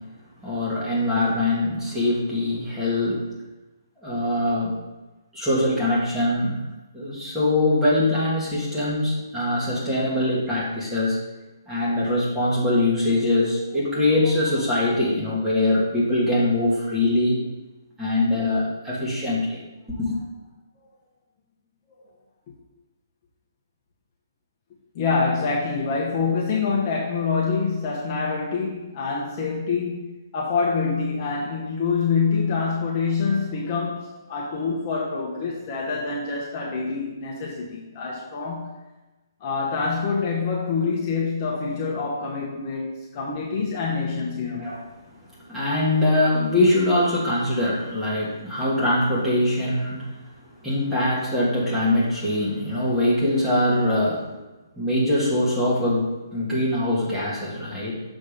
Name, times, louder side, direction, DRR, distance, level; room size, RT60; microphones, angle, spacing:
voice 1, 0.4-3.3 4.0-4.8 5.3-6.6 6.9-11.2 11.7-17.4 18.0-19.6 20.0-20.2 44.6-44.8 45.5-50.1 50.6-54.3 54.8-58.0, left 1 dB, 5° right, -7 dB, 1.6 m, -23 dB
voice 2, 24.9-38.7 39.4-44.7, left 5 dB, 30° left, -4 dB, 1.0 m, -26 dB
6.6 x 3.8 x 5.1 m, 1.1 s
hypercardioid pair, 160°, 2 cm